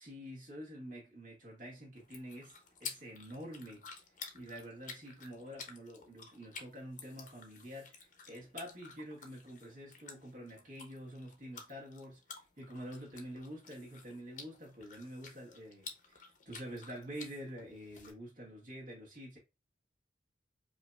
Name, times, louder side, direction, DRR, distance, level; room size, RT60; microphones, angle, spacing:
voice 1, 0.0-2.5 2.8-3.9 4.3-19.4, equal, 50° right, 1.7 m, -47 dB
sound 1, 2.0-18.1, left 5 dB, 45° left, 0.8 m, -52 dB
4.9 x 2.7 x 2.3 m
head